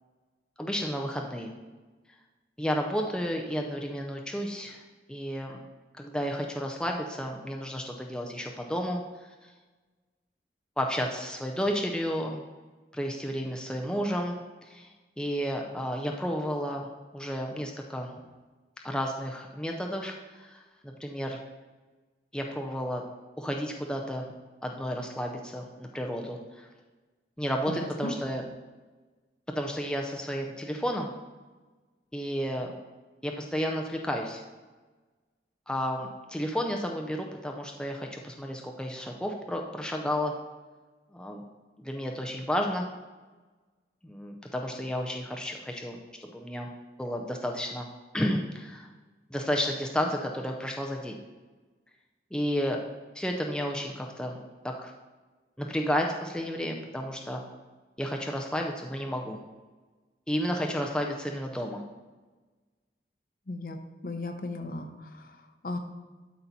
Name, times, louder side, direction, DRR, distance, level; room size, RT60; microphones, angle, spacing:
voice 1, 0.6-1.5 2.6-4.8 5.1-5.6 6.0-9.5 10.8-12.4 12.9-14.9 15.2-16.9 17.1-18.1 18.8-21.4 22.3-23.0 23.4-24.3 24.6-26.7 27.4-28.4 29.5-31.1 32.1-32.7 33.2-34.4 35.7-40.3 41.1-41.4 41.8-42.9 44.0-46.7 47.0-47.9 48.1-48.9 49.3-51.2 52.3-52.8 53.1-54.9 55.6-57.4 58.0-59.4 60.3-61.8, equal, 5° left, 1 dB, 0.5 m, -32 dB
voice 2, 27.7-28.1 63.5-63.8 64.0-64.9 65.6-65.8, left 2 dB, 55° left, 5 dB, 0.7 m, -35 dB
12.5 x 4.2 x 4.1 m, 1.3 s
head